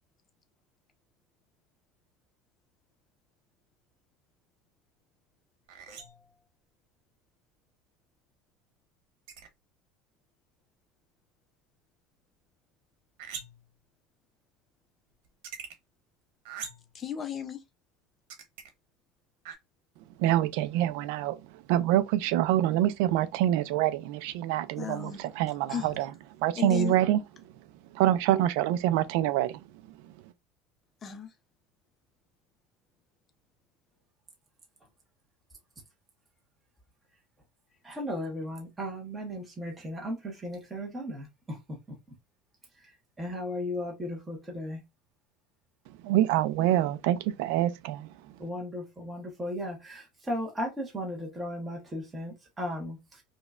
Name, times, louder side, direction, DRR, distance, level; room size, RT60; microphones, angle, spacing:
sound 1, 5.7-6.3 9.3-9.5 13.2-13.7 15.2-15.7 16.4-16.9 18.3-18.7 19.4-19.5, right 7 dB, 80° right, 1.0 m, -42 dB
voice 1, 5.9-6.3 16.9-17.6 24.8-25.3 25.7-26.0 26.6-27.0 31.0-31.3, left 7 dB, 20° left, 0.5 m, -35 dB
voice 2, 20.2-21.4 21.7-26.1 26.4-27.2 28.0-29.6 46.0-48.1, right 13 dB, 65° right, 0.3 m, -26 dB
voice 3, 37.8-41.6 41.9-42.0 43.2-44.8 48.4-53.2, left 1 dB, 10° right, 0.8 m, -36 dB
5.0 x 2.1 x 2.3 m
cardioid pair, 180°, 0 cm